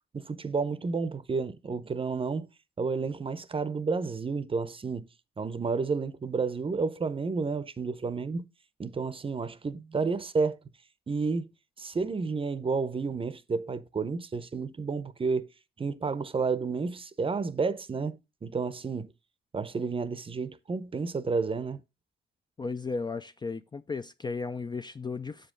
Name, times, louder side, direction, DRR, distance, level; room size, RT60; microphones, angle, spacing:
voice 1, 0.1-2.5 2.8-5.0 5.4-8.5 8.8-10.6 11.1-11.5 11.8-15.5 15.8-18.2 18.4-19.1 19.5-21.8, right 4 dB, 25° right, 0.7 m, -31 dB
voice 2, 22.6-25.5, left 4 dB, 20° left, 0.4 m, -35 dB
7.1 x 5.2 x 3.7 m
cardioid pair, 90°, 20 cm